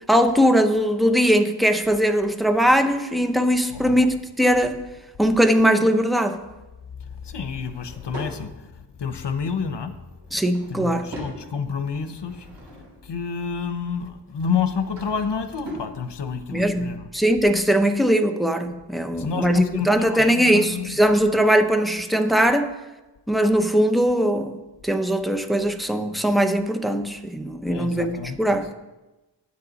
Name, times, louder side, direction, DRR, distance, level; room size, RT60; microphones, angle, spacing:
voice 1, 0.1-4.8 5.2-6.4 10.3-11.1 16.5-22.7 23.3-24.5 24.8-28.7, equal, ahead, 6 dB, 0.6 m, -20 dB
voice 2, 7.3-8.5 9.0-9.9 10.7-12.3 13.1-17.0 19.2-21.0 27.7-28.4, left 6 dB, 75° left, 9 dB, 0.8 m, -29 dB
Drawer open or close / Wood, 7.4-8.4 10.1-11.4 11.9-13.1 14.4-15.9, right 1 dB, 75° right, 3.3 m, -40 dB
9.6 x 8.2 x 4.0 m, 1.1 s
wide cardioid pair, 85°, 42 cm